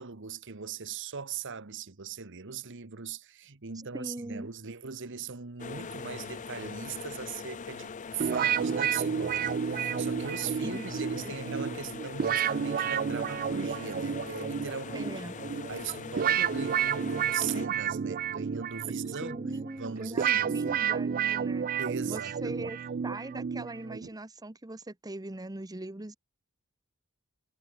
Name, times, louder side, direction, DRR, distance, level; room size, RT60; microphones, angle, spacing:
voice 1, 0.0-15.1 15.7-19.4 19.8-20.8 21.8-22.7, right 6 dB, 60° right, 1.3 m, -39 dB
voice 2, 3.9-4.5 10.6-10.9 11.2-11.3 14.9-15.3 19.2-21.7 22.1-22.8 23.0-26.2, right 1 dB, 15° right, 1.0 m, -40 dB
sound 1, 5.6-17.7, left 5 dB, 35° left, 0.5 m, -42 dB
sound 2, 8.2-24.1, right 7 dB, 40° right, 0.4 m, -31 dB
head